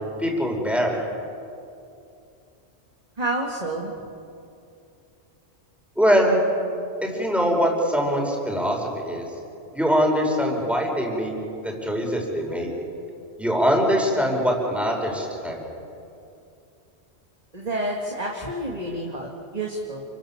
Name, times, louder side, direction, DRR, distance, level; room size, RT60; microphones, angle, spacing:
voice 1, 0.2-1.0 6.0-6.4 7.0-9.2 9.7-11.3 11.6-12.7 13.4-15.6, equal, ahead, 0 dB, 5.1 m, -22 dB
voice 2, 3.2-3.9 17.5-20.0, right 1 dB, 35° right, -1 dB, 2.4 m, -29 dB
29.5 x 24.0 x 7.4 m, 2.6 s
omnidirectional pair, 1.1 m